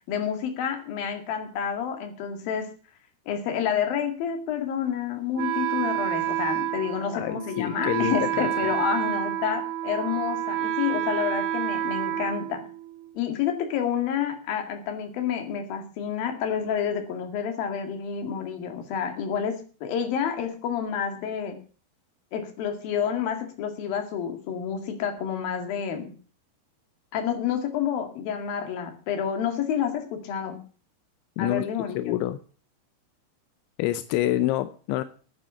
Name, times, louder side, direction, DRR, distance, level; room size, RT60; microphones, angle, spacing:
voice 1, 0.1-2.7 3.3-12.7 13.1-21.6 22.3-26.2 27.1-30.7 31.4-32.2, left 8 dB, 60° left, 6 dB, 3.5 m, -29 dB
Wind instrument woodwind instrument, 5.4-13.1, right 12 dB, 75° right, 3.2 m, -29 dB
voice 2, 7.1-8.5 31.4-31.6 32.0-32.4 33.8-35.0, left 14 dB, 85° left, 12 dB, 3.1 m, -27 dB
9.5 x 9.0 x 8.3 m, 0.39 s
omnidirectional pair, 5.3 m